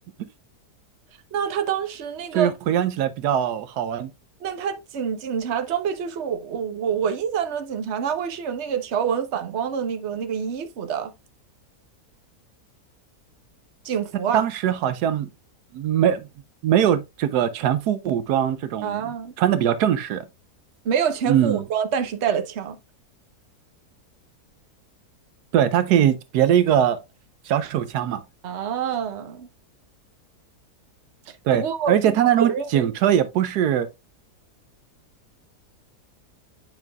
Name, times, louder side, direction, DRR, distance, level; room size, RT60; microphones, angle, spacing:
voice 1, 1.3-2.5 4.4-11.1 13.8-14.4 18.8-19.3 20.8-22.8 28.4-29.5 31.5-32.1 32.4-32.9, right 7 dB, 50° right, 1.1 m, -26 dB
voice 2, 2.3-4.1 14.3-15.3 15.7-16.3 16.6-20.2 21.3-21.6 25.5-27.0 27.4-28.2 31.4-33.9, right 10 dB, 80° right, 1.2 m, -21 dB
9.0 x 5.4 x 2.3 m
omnidirectional pair, 1.7 m